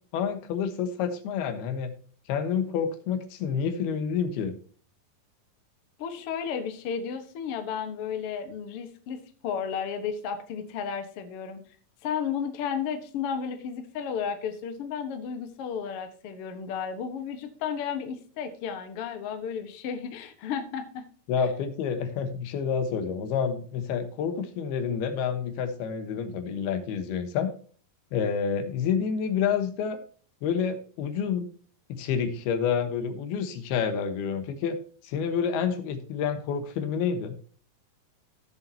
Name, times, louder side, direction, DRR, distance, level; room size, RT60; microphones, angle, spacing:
voice 1, 0.1-1.9 2.3-4.6 21.3-27.5 28.1-30.0 30.4-31.5 31.9-34.8 35.0-37.3, left 7 dB, 85° left, 9 dB, 3.1 m, -28 dB
voice 2, 6.0-11.6 12.0-21.0, left 7 dB, 60° left, 7 dB, 1.5 m, -33 dB
16.5 x 6.9 x 2.8 m, 0.44 s
omnidirectional pair, 4.4 m